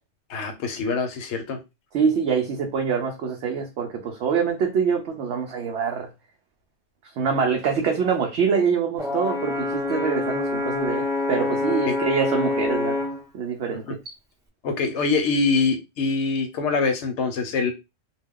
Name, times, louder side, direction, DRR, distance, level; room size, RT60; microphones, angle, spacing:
voice 1, 0.3-1.6 11.9-12.0 13.9-14.0 14.6-17.7, left 4 dB, 70° left, 7 dB, 0.9 m, -24 dB
voice 2, 1.9-6.1 7.2-13.0 13.3-13.8, right 6 dB, 65° right, 2 dB, 0.8 m, -25 dB
Brass instrument, 9.0-13.2, left 2 dB, 5° right, 0.4 m, -26 dB
2.2 x 2.2 x 3.5 m, 0.25 s
omnidirectional pair, 1.3 m